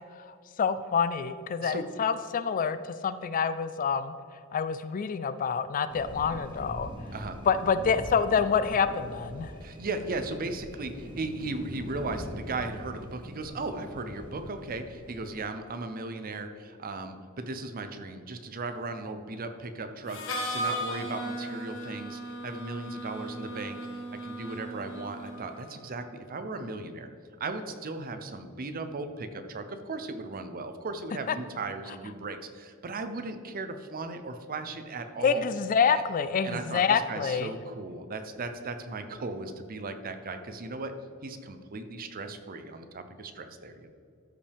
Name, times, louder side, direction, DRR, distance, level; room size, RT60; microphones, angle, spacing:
voice 1, 0.6-2.8 3.0-4.1 4.5-6.9 7.5-9.5 35.2-37.5, left 6 dB, 40° left, 13 dB, 0.3 m, -27 dB
sound 1, 5.9-15.4, equal, 25° right, 1.1 m, -43 dB
voice 2, 9.6-27.1 27.4-35.4 36.4-40.9 41.2-43.9, right 3 dB, 45° right, 8 dB, 0.6 m, -37 dB
Harmonica, 20.1-25.8, equal, 65° left, 1.4 m, -36 dB
13.0 x 5.4 x 3.5 m, 2.5 s
head